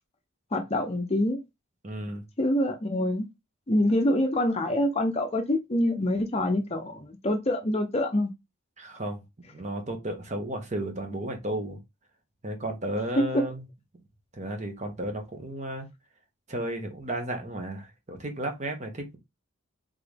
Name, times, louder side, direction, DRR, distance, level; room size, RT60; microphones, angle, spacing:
voice 1, 0.5-1.4 2.4-3.3 3.7-8.3 13.2-13.4, left 1 dB, 30° left, 0.6 m, -25 dB
voice 2, 1.8-2.2 8.8-9.2 9.5-11.8 12.4-13.6 14.3-15.9 16.5-19.2, right 1 dB, 35° right, 1.2 m, -33 dB
3.9 x 3.8 x 3.4 m
head